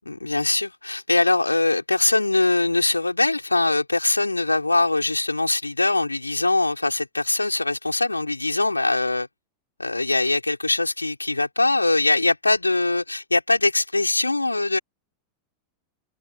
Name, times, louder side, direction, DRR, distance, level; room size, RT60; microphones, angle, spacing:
voice 1, 0.0-9.3 9.8-14.8, left 2 dB, 85° left, 4.8 m, -22 dB
open air
figure-of-eight pair, 90°, 0 cm